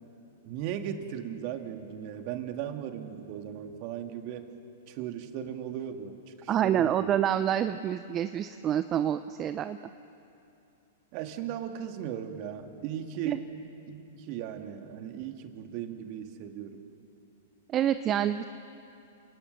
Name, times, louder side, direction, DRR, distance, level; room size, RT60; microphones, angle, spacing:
voice 1, 0.5-4.5 4.9-7.1 11.1-13.5 13.9-16.8, right 9 dB, 50° right, 6 dB, 2.0 m, -37 dB
voice 2, 6.5-9.8 13.2-13.4 17.7-18.4, right 10 dB, 30° right, 11 dB, 0.6 m, -27 dB
28.0 x 18.0 x 6.9 m, 2.7 s
hypercardioid pair, 115°, 0 cm